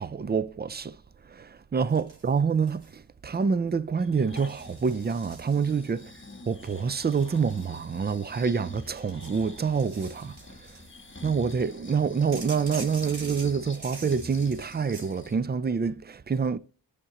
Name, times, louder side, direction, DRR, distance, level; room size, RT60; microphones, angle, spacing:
voice 1, 0.0-6.0 6.5-10.8 11.2-16.6, right 5 dB, 25° right, 0.4 m, -27 dB
sound 1, 1.9-3.0 3.3-3.7 4.4-6.0 6.6-8.4 8.8-11.0 12.3-15.1, right 3 dB, 80° right, 1.9 m, -46 dB
Breathing, 4.0-15.4 15.8-15.9, left 2 dB, 30° left, 1.1 m, -46 dB
11.0 x 3.7 x 3.0 m
cardioid pair, 50°, 39 cm